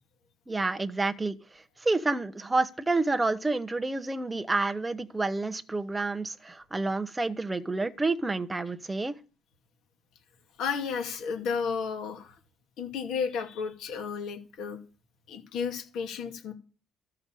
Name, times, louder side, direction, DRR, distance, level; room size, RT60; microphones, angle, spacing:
voice 1, 0.5-9.1, right 3 dB, 10° right, 0.7 m, -29 dB
voice 2, 10.6-12.4 12.8-14.8 15.3-16.5, left 6 dB, 55° left, 2.3 m, -32 dB
13.0 x 6.7 x 7.6 m
cardioid pair, 170°, 0 cm